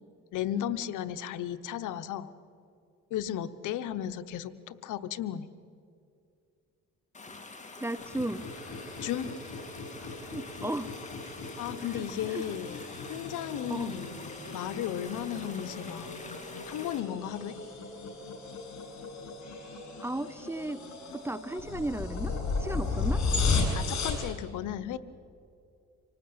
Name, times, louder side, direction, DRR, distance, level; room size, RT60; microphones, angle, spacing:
voice 1, 0.3-2.3 3.1-5.5 9.0-9.3 11.6-12.8 13.1-14.2 14.5-16.2 16.7-17.6 23.7-25.0, left 11 dB, 85° left, 13 dB, 1.0 m, -35 dB
sound 1, 7.1-17.0, left 3 dB, 25° left, 2.9 m, -46 dB
voice 2, 7.8-8.5 10.0-10.9 12.3-12.4 13.7-14.0 20.0-20.8 21.1-22.3 22.6-23.2, right 1 dB, 10° right, 17 dB, 0.7 m, -35 dB
sound 2, 8.0-24.3, left 3 dB, 65° left, 7.6 m, -35 dB
26.0 x 19.0 x 8.7 m, 2.4 s
cardioid pair, 90°, 30 cm